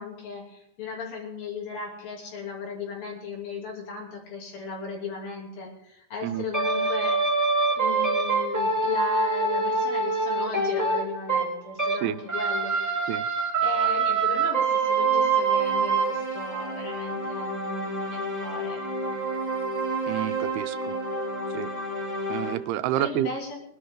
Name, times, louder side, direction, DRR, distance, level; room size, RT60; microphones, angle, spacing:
voice 1, 0.0-7.2 7.8-13.2 13.6-18.8 23.0-23.6, left 4 dB, 65° left, -1 dB, 4.7 m, -36 dB
sound 1, 6.5-12.0 12.3-22.5, right 3 dB, 5° right, 1.8 m, -26 dB
voice 2, 20.1-21.0 21.5-21.7 22.3-23.3, right 13 dB, 85° right, 12 dB, 2.6 m, -29 dB
21.0 x 11.5 x 3.8 m, 0.75 s
omnidirectional pair, 4.5 m